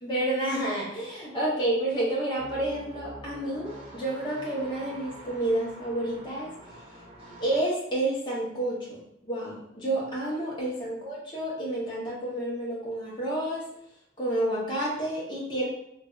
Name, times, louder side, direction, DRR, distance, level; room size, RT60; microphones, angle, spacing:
voice 1, 0.0-6.8 7.4-13.7 14.2-15.7, right 1 dB, 25° left, -6 dB, 0.9 m, -30 dB
sound 1, 2.4-7.6, right 1 dB, 30° right, 0.6 m, -46 dB
3.3 x 2.5 x 2.4 m, 0.75 s
head